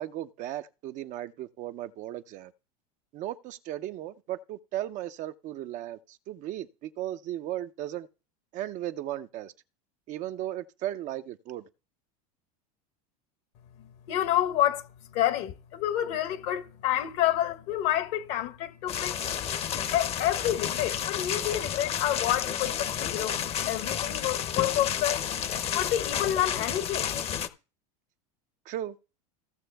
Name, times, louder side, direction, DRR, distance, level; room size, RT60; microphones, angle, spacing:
voice 1, 0.0-2.5 3.1-8.1 8.5-9.5 10.1-11.6 28.7-29.0, right 13 dB, 40° right, 0.5 m, -36 dB
voice 2, 13.8-14.9 15.1-19.2 19.9-23.4 23.6-25.2 25.7-27.1, left 12 dB, 60° left, 1.1 m, -28 dB
sound 1, 18.9-27.5, left 9 dB, 30° left, 0.8 m, -31 dB
15.5 x 6.1 x 3.4 m
supercardioid pair, 130°, 19 cm